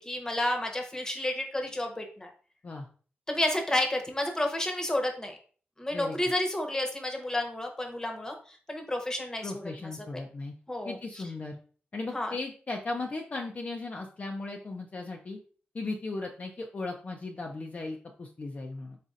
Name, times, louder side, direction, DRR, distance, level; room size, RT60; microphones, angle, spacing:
voice 1, 0.0-2.3 3.3-5.4 5.8-9.6 10.7-11.2 12.1-12.3, left 1 dB, 15° left, 3 dB, 0.9 m, -31 dB
voice 2, 9.4-10.5 10.8-11.6 11.9-15.4 15.7-19.0, left 3 dB, 40° left, 1 dB, 0.5 m, -37 dB
4.1 x 4.1 x 2.5 m, 0.42 s
wide cardioid pair, 100°, 4 cm